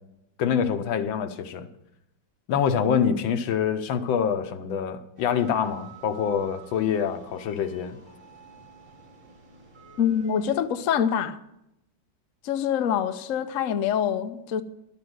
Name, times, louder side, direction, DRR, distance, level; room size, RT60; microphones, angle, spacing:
voice 1, 0.4-1.7 2.5-8.0, left 7 dB, 90° left, 1.6 m, -25 dB
sound 1, 5.2-10.6, right 5 dB, 40° right, 3.0 m, -49 dB
voice 2, 10.0-11.4 12.4-14.6, left 8 dB, 60° left, 0.9 m, -25 dB
12.0 x 7.7 x 7.8 m
omnidirectional pair, 2.1 m